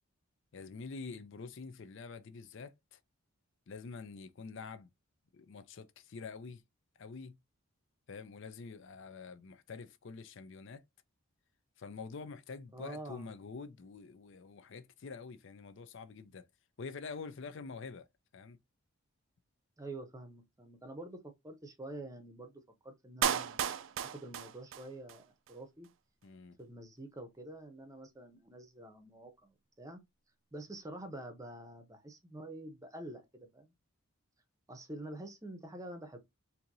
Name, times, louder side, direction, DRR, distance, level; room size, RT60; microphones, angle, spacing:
voice 1, 0.5-3.0 3.7-4.9 5.3-6.6 7.0-7.4 8.1-10.8 11.8-16.5 16.8-18.1 18.3-18.6 26.2-26.6, left 4 dB, 55° left, 0.4 m, -46 dB
voice 2, 12.7-13.3 19.8-25.9 26.6-30.0 30.5-33.7 34.7-36.2, right 1 dB, 15° right, 0.7 m, -47 dB
Clapping, 23.2-25.2 25.5-25.6, right 9 dB, 60° right, 0.3 m, -34 dB
4.4 x 2.7 x 2.6 m
head